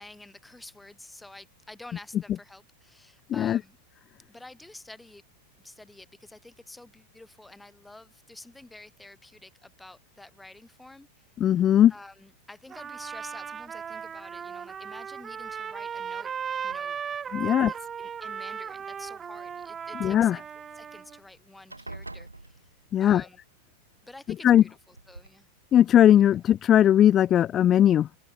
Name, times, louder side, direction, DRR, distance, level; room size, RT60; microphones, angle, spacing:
voice 1, 0.0-3.8 4.3-5.2 5.6-11.3 11.9-16.3 16.6-17.0 17.4-20.4 20.7-22.7 23.0-23.4 24.0-25.5 26.4-26.5, left 2 dB, 5° left, 4.2 m, -49 dB
voice 2, 11.4-11.9 17.3-17.7 20.0-20.4 22.9-23.2 24.4-24.6 25.7-28.1, left 11 dB, 30° left, 0.5 m, -19 dB
Trumpet, 12.7-21.2, right 7 dB, 20° right, 4.3 m, -37 dB
sound 1, 16.7-17.3 18.1-19.0 20.8-20.9 21.1-21.4 21.7-23.1 24.3-24.4 24.9-25.3, right 2 dB, 85° right, 6.3 m, -45 dB
open air
figure-of-eight pair, 90°, 0 cm